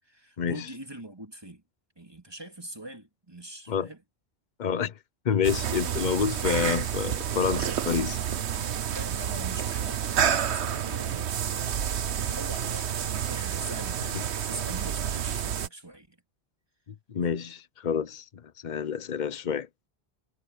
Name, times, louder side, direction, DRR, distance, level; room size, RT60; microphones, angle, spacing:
voice 1, 0.0-1.6 2.0-4.0 8.8-11.7 12.1-16.2, right 1 dB, 25° right, 2.6 m, -43 dB
voice 2, 4.6-5.0 5.2-8.2 17.1-19.7, left 7 dB, 45° left, 0.9 m, -28 dB
sound 1, 5.4-15.7, right 9 dB, 85° right, 1.2 m, -29 dB
omnidirectional pair, 1.1 m